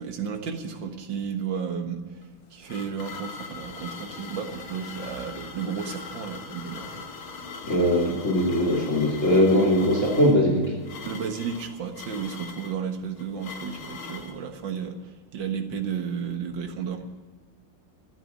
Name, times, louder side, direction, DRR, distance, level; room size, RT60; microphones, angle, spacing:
voice 1, 0.0-7.1 11.0-17.0, right 6 dB, 65° right, 5 dB, 2.1 m, -33 dB
sound 1, 2.2-14.4, left 4 dB, 85° left, 2.4 m, -41 dB
voice 2, 7.6-10.8, equal, 35° left, -1 dB, 3.2 m, -21 dB
14.0 x 10.5 x 8.4 m, 1.4 s
omnidirectional pair, 2.2 m